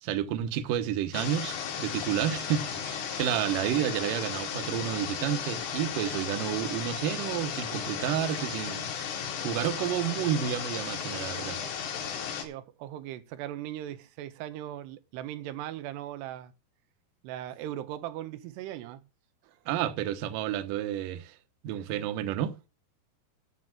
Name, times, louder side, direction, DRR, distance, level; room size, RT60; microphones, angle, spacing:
voice 1, 0.0-8.9 9.4-11.6 19.7-21.4 21.6-22.6, right 10 dB, 70° right, 2.3 m, -30 dB
sound 1, 1.1-12.5, left 7 dB, 75° left, 4.1 m, -35 dB
voice 2, 12.4-16.5 17.2-19.1 19.4-19.6 21.8-21.9, right 12 dB, 85° right, 2.9 m, -39 dB
9.6 x 7.2 x 7.7 m
omnidirectional pair, 4.8 m